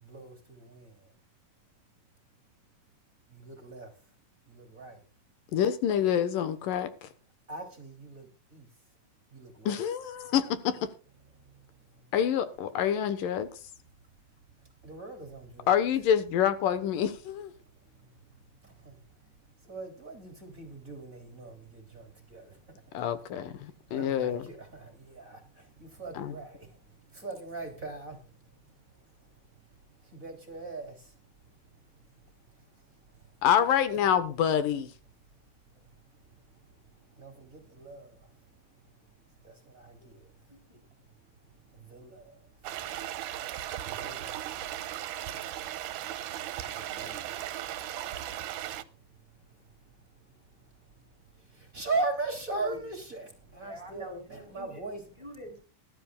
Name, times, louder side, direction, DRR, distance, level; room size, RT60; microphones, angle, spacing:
voice 1, 0.0-1.0 3.3-3.9 4.5-5.0 7.5-8.7 9.3-9.8 14.8-15.7 18.6-19.0 19.6-22.6 22.9-23.2 23.9-26.7 27.1-28.2 30.1-31.1 33.9-34.0 37.2-38.3 39.4-40.3 41.7-42.5 43.8-44.8 46.7-47.7 51.5-55.0, right 3 dB, 25° right, 3.2 m, -39 dB
voice 2, 5.5-7.1 9.7-10.9 12.1-13.5 15.7-17.5 22.9-24.5 26.2-26.4 33.4-34.9, left 9 dB, 80° left, 2.9 m, -27 dB
voice 3, 40.5-40.8 52.6-52.9 53.6-54.8 55.2-55.6, left 1 dB, 10° right, 3.8 m, -45 dB
sound 1, 42.6-48.8, right 12 dB, 75° right, 2.4 m, -37 dB
20.5 x 12.5 x 2.4 m
omnidirectional pair, 3.8 m